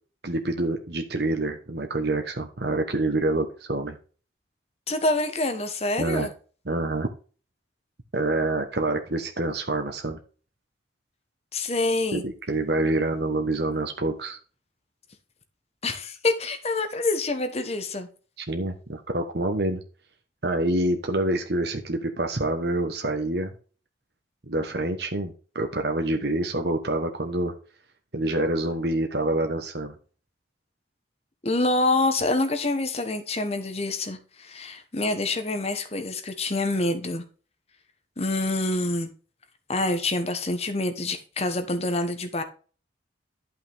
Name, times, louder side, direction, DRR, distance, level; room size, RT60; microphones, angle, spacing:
voice 1, 0.2-4.0 6.0-6.3 6.7-7.1 8.1-10.2 12.1-14.4 18.4-19.8 20.4-23.5 24.5-27.5 28.1-29.9, right 2 dB, 60° right, 1.2 m, -27 dB
voice 2, 4.9-6.3 11.5-12.2 15.8-18.1 31.4-37.2 38.2-39.1 39.7-42.4, left 2 dB, 35° left, 1.2 m, -26 dB
11.5 x 5.8 x 3.6 m
head